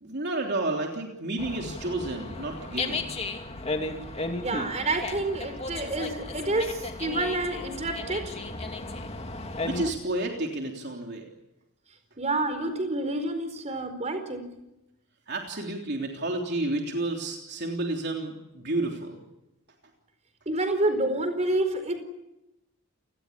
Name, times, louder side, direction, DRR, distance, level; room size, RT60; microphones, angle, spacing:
voice 1, 0.0-3.0 9.6-11.3 15.3-19.2, right 2 dB, 50° right, 1 dB, 3.5 m, -31 dB
Dog, 1.4-9.9, left 2 dB, 30° left, 2.6 m, -34 dB
voice 2, 4.4-8.3 12.2-14.5 20.5-22.0, right 2 dB, 30° right, 8 dB, 4.5 m, -28 dB
30.0 x 20.0 x 8.5 m, 0.91 s
head